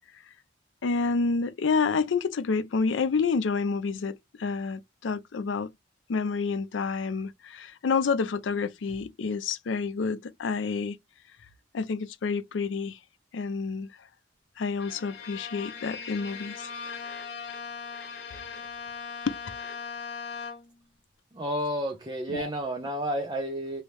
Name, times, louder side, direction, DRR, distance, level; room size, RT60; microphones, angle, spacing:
voice 1, 0.8-5.7 6.1-11.0 11.7-13.0 13.3-13.9 14.6-16.7 19.3-19.4 22.3-22.5, left 4 dB, 85° left, 0.4 m, -29 dB
Bowed string instrument, 14.8-20.9, left 5 dB, 65° left, 1.0 m, -39 dB
voice 2, 21.3-23.8, equal, 25° right, 0.7 m, -31 dB
3.0 x 2.7 x 3.3 m
head